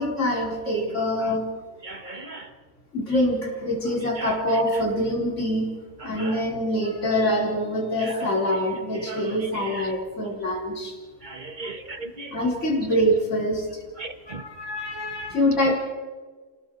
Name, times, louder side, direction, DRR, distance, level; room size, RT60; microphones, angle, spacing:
voice 1, 0.0-1.5 2.9-5.7 6.0-10.9 12.3-13.8 14.3-15.7, equal, 50° left, -2 dB, 4.4 m, -25 dB
voice 2, 1.9-2.4 9.1-9.2 11.2-12.3 14.3-14.4, right 3 dB, 30° right, 5 dB, 1.7 m, -37 dB
27.0 x 21.0 x 4.7 m, 1.5 s
omnidirectional pair, 1.6 m